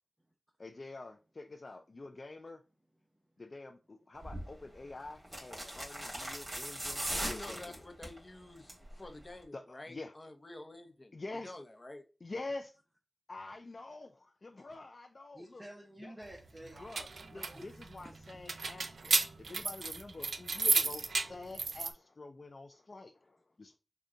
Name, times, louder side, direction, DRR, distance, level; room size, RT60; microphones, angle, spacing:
voice 1, 0.6-2.6 3.4-7.8 9.5-10.1 11.1-11.5 12.2-12.7 13.3-15.6 16.0-16.1 16.8-23.8, left 3 dB, 55° left, 0.3 m, -47 dB
sound 1, 4.2-4.5 5.2-8.2 8.6-8.9 9.2-9.3, right 1 dB, 40° right, 1.8 m, -39 dB
voice 2, 7.1-11.1 11.4-12.0, left 2 dB, 40° left, 0.7 m, -49 dB
voice 3, 15.3-17.7 18.0-18.1, right 1 dB, 15° right, 0.7 m, -51 dB
sound 2, 16.6-21.9, right 4 dB, 90° right, 0.3 m, -33 dB
3.8 x 2.2 x 3.6 m
wide cardioid pair, 55°, 0 cm